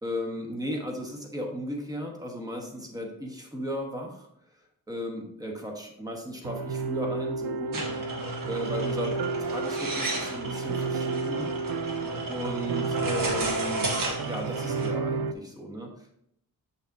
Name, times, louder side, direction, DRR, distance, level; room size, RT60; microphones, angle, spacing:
voice 1, 0.0-4.3 4.9-7.8 8.4-11.5 12.3-13.9 14.2-16.1, equal, 10° right, 0 dB, 1.2 m, -35 dB
sound 1, 6.4-15.3, right 4 dB, 80° right, 0.6 m, -31 dB
sound 2, 7.7-14.9, right 2 dB, 60° right, 1.5 m, -34 dB
7.6 x 7.1 x 2.7 m, 0.73 s
wide cardioid pair, 175°, 36 cm